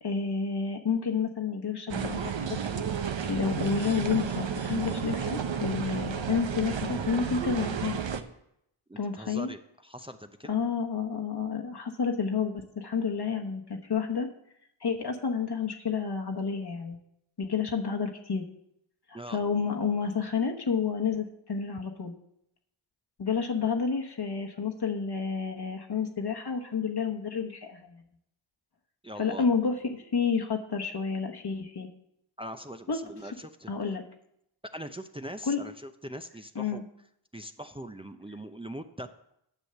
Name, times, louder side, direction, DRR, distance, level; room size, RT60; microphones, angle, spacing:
voice 1, 0.0-2.9 3.3-8.0 9.0-9.5 10.5-14.3 14.8-17.0 17.4-18.5 19.1-22.1 23.2-28.0 29.2-31.9 32.9-33.0 33.7-34.0 35.5-35.6 36.5-36.8, left 5 dB, 55° left, 3 dB, 1.2 m, -30 dB
sound 1, 1.9-8.2, right 7 dB, 65° right, 0.9 m, -32 dB
voice 2, 8.9-10.6 19.1-19.4 29.0-29.5 32.4-33.7 34.7-36.8 37.3-39.1, equal, 10° right, 7 dB, 0.6 m, -42 dB
9.9 x 6.4 x 6.8 m, 0.78 s
cardioid pair, 45°, 48 cm